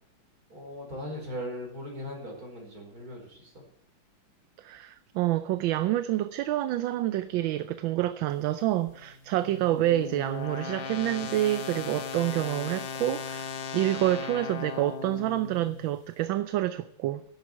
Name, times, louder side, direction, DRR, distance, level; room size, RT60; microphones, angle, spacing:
voice 1, 0.5-3.6, equal, 45° right, 5.2 m, -39 dB
voice 2, 4.6-17.3, right 14 dB, 80° right, 1.4 m, -28 dB
sound 1, 8.9-16.0, left 6 dB, 55° left, 1.8 m, -38 dB
11.5 x 8.3 x 8.5 m
omnidirectional pair, 2.1 m